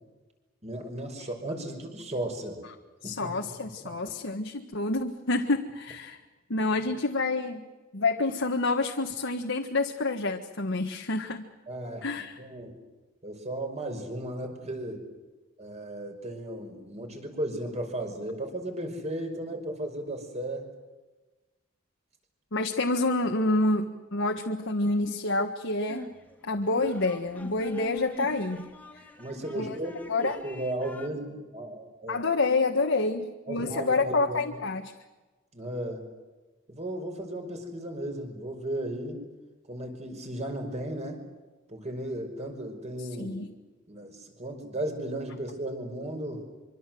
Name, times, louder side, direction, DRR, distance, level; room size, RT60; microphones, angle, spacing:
voice 1, 0.6-2.6 3.0-3.3 3.8-3.9 11.7-12.8 13.2-15.0 15.6-20.7 29.2-32.2 33.5-34.6 35.5-36.0 36.7-39.3 39.7-41.2 41.7-43.4 43.9-46.5, right 1 dB, 35° right, 4 dB, 5.6 m, -35 dB
voice 2, 3.0-6.2 6.5-7.6 7.9-11.4 12.0-12.4 22.5-26.1 26.4-28.7 29.5-29.7 30.1-30.4 32.1-34.9 43.2-43.5, left 2 dB, 65° left, 3 dB, 1.6 m, -28 dB
sound 1, 25.9-31.1, left 1 dB, 10° left, 2.3 m, -45 dB
25.5 x 25.0 x 7.8 m, 1.2 s
head